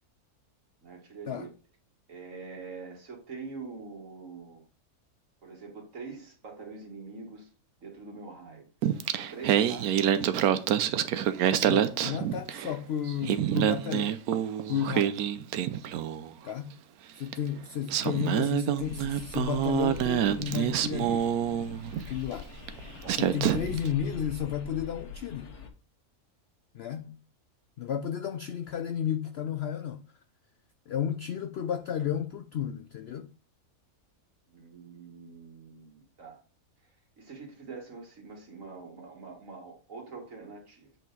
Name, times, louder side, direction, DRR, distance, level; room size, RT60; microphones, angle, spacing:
voice 1, 0.8-1.5 2.1-4.6 5.4-7.5 7.8-8.7 9.1-10.1 23.0-23.2 34.5-36.4 37.2-40.9, right 4 dB, 60° right, 2.2 m, -44 dB
Singing, 8.8-12.8 13.1-16.3 17.3-17.4 17.9-22.1 22.7-22.8 23.1-23.9, right 10 dB, 80° right, 1.1 m, -27 dB
voice 2, 11.6-14.2 14.7-15.3 16.4-16.7 17.2-21.3 22.0-22.5 23.1-25.5 26.7-27.2 27.8-30.0 30.9-33.3, left 9 dB, 70° left, 0.6 m, -33 dB
sound 1, 18.8-25.7, left 5 dB, 85° left, 1.7 m, -44 dB
8.1 x 4.4 x 4.0 m
omnidirectional pair, 1.6 m